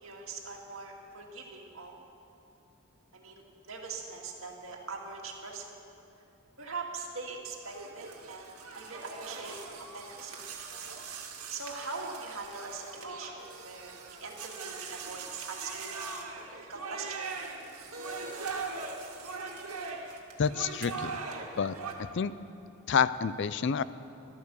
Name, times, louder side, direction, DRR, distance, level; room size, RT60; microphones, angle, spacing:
voice 1, 0.0-1.9 3.1-5.7 6.6-9.6 9.9-10.4 11.5-13.9 14.2-16.2 16.7-17.2, right 4 dB, 65° right, 0 dB, 2.2 m, -42 dB
sound 1, 7.6-21.9, right 4 dB, 80° right, 1.9 m, -41 dB
voice 2, 20.4-21.1 21.6-21.8 22.1-22.3 22.9-23.8, left 6 dB, 55° left, 16 dB, 0.4 m, -28 dB
14.0 x 13.5 x 7.0 m, 2.8 s
head